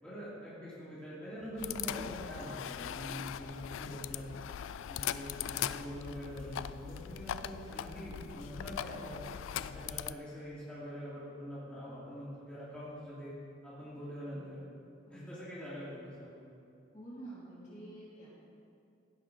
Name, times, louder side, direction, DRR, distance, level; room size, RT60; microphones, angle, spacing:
voice 1, 0.0-4.3 4.9-9.2 9.5-13.3 13.6-14.6 15.1-16.3, equal, 5° left, -10 dB, 2.9 m, -44 dB
sound 1, 1.6-10.1, left 10 dB, 85° left, 0.3 m, -40 dB
voice 2, 15.1-15.4 16.9-18.3, right 1 dB, 40° left, -8 dB, 2.7 m, -49 dB
16.0 x 5.9 x 5.0 m, 2.6 s
head